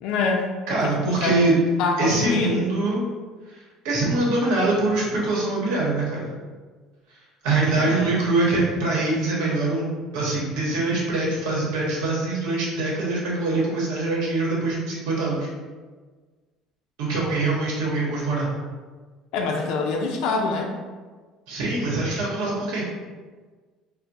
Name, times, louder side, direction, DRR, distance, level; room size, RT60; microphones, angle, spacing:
voice 1, 0.0-0.5 0.8-2.6 7.6-8.1 19.3-20.8, left 4 dB, 75° left, 1 dB, 0.4 m, -26 dB
voice 2, 0.7-1.6 2.0-3.1 3.5-3.6 3.8-6.3 7.4-9.9 10.1-15.5 17.0-18.5 21.5-22.8, right 2 dB, 90° right, -4 dB, 1.1 m, -23 dB
4.3 x 2.1 x 2.6 m, 1.4 s
cardioid pair, 135°, 0 cm